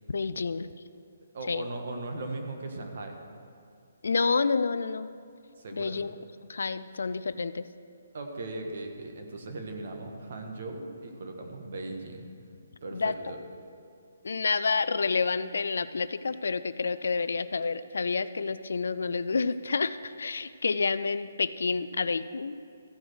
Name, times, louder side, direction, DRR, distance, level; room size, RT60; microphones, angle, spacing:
voice 1, 0.1-0.7 1.5-1.7 4.0-5.1 5.7-6.1 6.5-7.7 12.9-13.1 14.2-22.6, left 4 dB, 75° left, 14 dB, 0.4 m, -29 dB
voice 2, 1.3-3.1 5.6-6.0 8.1-12.3 12.8-13.4, right 2 dB, 60° right, 3 dB, 1.5 m, -38 dB
14.5 x 4.9 x 6.3 m, 2.4 s
hypercardioid pair, 155°, 0 cm